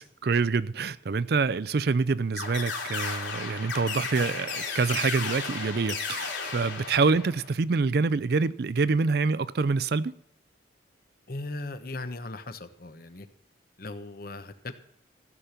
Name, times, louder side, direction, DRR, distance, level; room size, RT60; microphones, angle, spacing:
voice 1, 0.0-10.1, right 4 dB, 55° right, 0.4 m, -26 dB
sound 1, 2.4-7.5, left 5 dB, 80° left, 3.3 m, -34 dB
voice 2, 11.3-13.3 13.8-14.7, left 2 dB, 50° left, 1.0 m, -38 dB
15.0 x 6.0 x 8.2 m
head